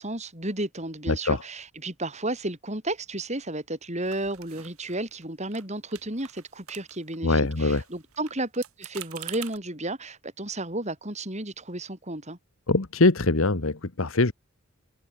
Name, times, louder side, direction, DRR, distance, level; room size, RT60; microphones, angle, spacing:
voice 1, 0.0-12.4, right 2 dB, 30° right, 6.6 m, -33 dB
sound 1, 4.1-5.2 5.5-5.7 5.9-7.2 7.5-9.6, right 12 dB, 75° right, 5.9 m, -44 dB
voice 2, 7.2-7.8 12.7-14.3, left 3 dB, 65° left, 1.3 m, -22 dB
head